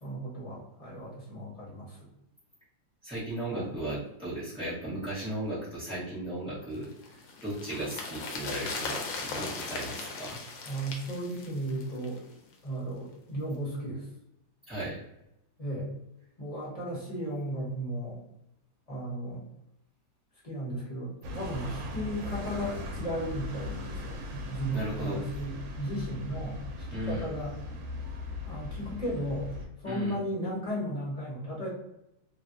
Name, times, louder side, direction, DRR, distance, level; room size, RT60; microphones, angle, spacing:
voice 1, 0.0-2.1 3.5-3.7 10.6-12.2 12.6-14.1 15.6-15.9 16.4-18.2 18.9-19.5 20.4-27.5 28.5-31.7, equal, 25° left, -6 dB, 0.9 m, -35 dB
voice 2, 3.0-6.9 7.4-10.4 14.7-15.0 24.7-25.2 26.9-27.2 29.8-30.1, right 1 dB, 5° right, -13 dB, 0.5 m, -36 dB
sound 1, 6.8-12.3 12.5-12.6, left 3 dB, 85° left, 1.3 m, -38 dB
sound 2, 21.2-29.7, left 2 dB, 80° right, 1.3 m, -39 dB
3.3 x 2.3 x 2.5 m, 0.85 s
omnidirectional pair, 2.0 m